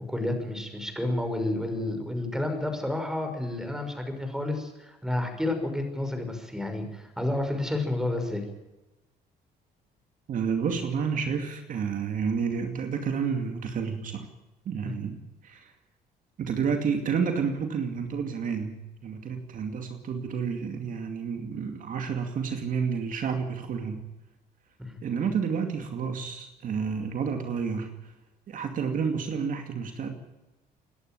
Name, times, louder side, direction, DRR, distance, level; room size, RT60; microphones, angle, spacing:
voice 1, 0.0-8.4 14.8-14.9 24.8-25.0, left 1 dB, 5° right, 6 dB, 5.9 m, -30 dB
voice 2, 10.3-14.3 14.6-15.7 16.4-24.0 25.0-28.1 28.5-30.1, right 6 dB, 50° right, 5 dB, 2.5 m, -30 dB
28.0 x 11.0 x 9.3 m, 1.0 s
cardioid pair, 110°, 17 cm